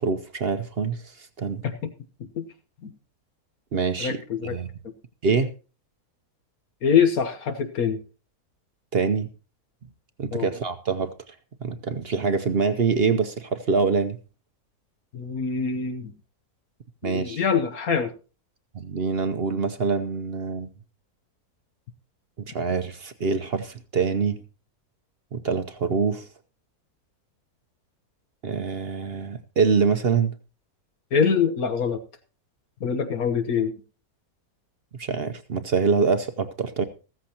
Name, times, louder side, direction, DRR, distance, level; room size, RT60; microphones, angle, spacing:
voice 1, 0.0-1.6 3.7-4.7 5.2-5.5 8.9-9.3 10.2-11.3 11.6-14.2 17.0-17.4 18.7-20.7 22.4-24.4 25.3-26.3 28.4-30.3 35.0-36.9, right 5 dB, 50° right, 10 dB, 0.8 m, -25 dB
voice 2, 4.0-4.6 4.8-4.9 6.8-8.0 10.3-10.5 15.1-16.1 17.0-18.1 31.1-32.0 32.8-33.7, left 6 dB, 65° left, 8 dB, 1.5 m, -24 dB
15.0 x 14.0 x 2.8 m, 0.33 s
omnidirectional pair, 1.7 m